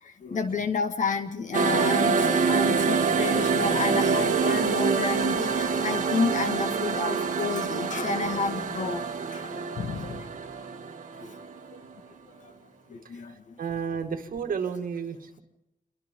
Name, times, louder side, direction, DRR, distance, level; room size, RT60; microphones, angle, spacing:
voice 1, 0.0-10.3 11.2-11.4 11.7-11.8 12.4-12.5 12.9-13.6, left 5 dB, 60° left, 8 dB, 1.9 m, -31 dB
sound 1, 1.5-11.9, right 5 dB, 60° right, 2.0 m, -26 dB
voice 2, 13.6-15.4, right 6 dB, 75° right, 6 dB, 2.1 m, -31 dB
28.5 x 23.5 x 3.8 m, 0.86 s
wide cardioid pair, 165°, 14 cm